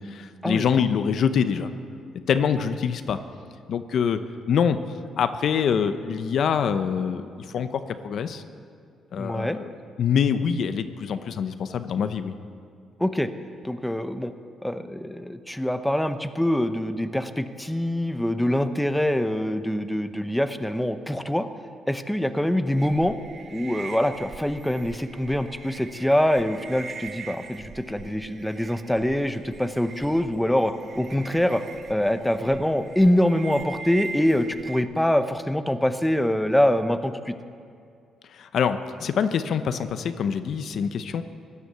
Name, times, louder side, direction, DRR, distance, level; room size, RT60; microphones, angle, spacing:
voice 1, 0.0-1.7 2.3-3.2 3.7-4.2 4.5-4.8 5.2-8.4 9.1-9.7 10.0-12.4 38.3-41.2, left 7 dB, 65° left, 10 dB, 0.8 m, -25 dB
voice 2, 9.2-9.6 13.0-13.3 13.6-14.3 14.6-21.5 21.9-23.2 23.5-31.6 31.9-37.3, left 1 dB, 5° left, 9 dB, 0.8 m, -24 dB
sound 1, 22.8-34.8, right 5 dB, 50° right, 0.9 m, -42 dB
16.5 x 11.0 x 6.9 m, 2.4 s
cardioid pair, 90°, 0 cm